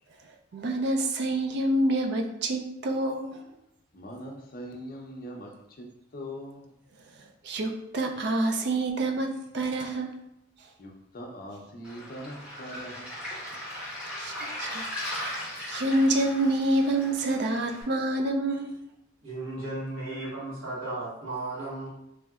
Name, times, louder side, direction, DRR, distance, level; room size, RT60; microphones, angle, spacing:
voice 1, 0.5-3.4 7.4-10.1 14.2-18.8, right 1 dB, 55° right, 3 dB, 0.3 m, -27 dB
voice 2, 3.9-6.7 10.8-13.2, equal, 45° left, 0 dB, 0.5 m, -42 dB
Waves surf, 11.8-17.8, equal, 5° right, 0.8 m, -38 dB
voice 3, 19.2-21.9, right 2 dB, 85° right, -7 dB, 1.3 m, -35 dB
3.1 x 2.7 x 2.3 m, 0.83 s
head